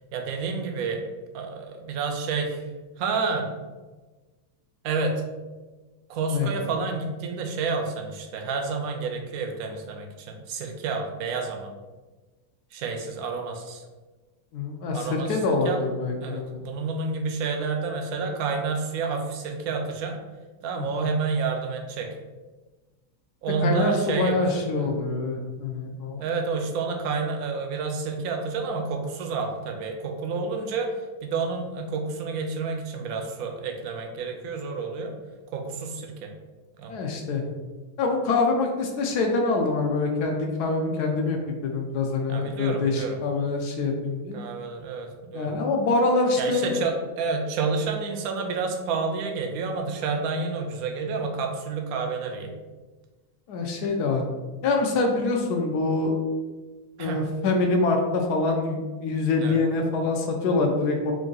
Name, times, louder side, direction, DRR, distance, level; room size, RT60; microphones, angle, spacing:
voice 1, 0.1-1.0 1.3-2.6 3.0-3.5 4.8-5.1 6.1-11.7 12.7-13.8 14.9-15.8 16.2-20.2 20.6-22.1 23.4-24.3 24.8-24.9 26.2-30.9 31.2-35.1 35.5-36.3 36.8-36.9 42.3-43.2 44.3-45.6 46.4-52.5 57.0-57.2 59.4-59.6, right 4 dB, 75° right, 3 dB, 0.8 m, -29 dB
voice 2, 14.5-16.6 20.7-21.1 23.6-26.2 36.9-37.4 38.0-44.4 45.3-46.8 53.5-54.3 54.6-56.1 57.0-61.1, left 3 dB, 70° left, 2 dB, 0.9 m, -25 dB
3.7 x 2.5 x 3.8 m, 1.3 s
omnidirectional pair, 2.1 m